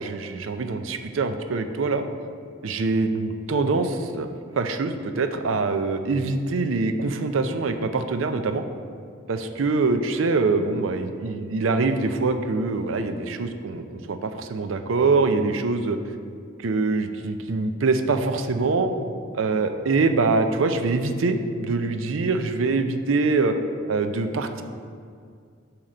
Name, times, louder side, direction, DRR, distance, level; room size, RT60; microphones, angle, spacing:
voice 1, 0.0-2.0 2.6-4.3 4.5-8.6 9.3-16.0 16.6-18.9 19.3-23.5 23.9-24.6, right 3 dB, 80° right, 7 dB, 0.5 m, -24 dB
8.8 x 2.9 x 6.3 m, 2.2 s
head